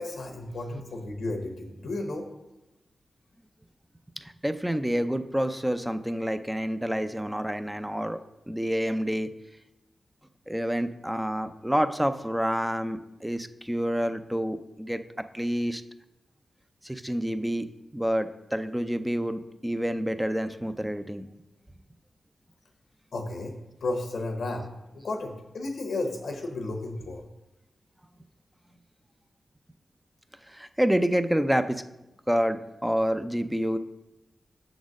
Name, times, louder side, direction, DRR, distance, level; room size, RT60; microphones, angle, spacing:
voice 1, 0.0-2.3 23.1-23.5 23.8-24.7 24.9-27.2, left 2 dB, 80° left, 2 dB, 1.0 m, -33 dB
voice 2, 4.4-8.2 8.5-9.3 10.5-15.0 15.3-15.8 16.8-17.7 17.9-21.3 30.5-31.8 32.3-33.8, equal, 5° right, 10 dB, 0.5 m, -28 dB
6.1 x 4.1 x 6.3 m, 0.95 s
cardioid pair, 50°, 0 cm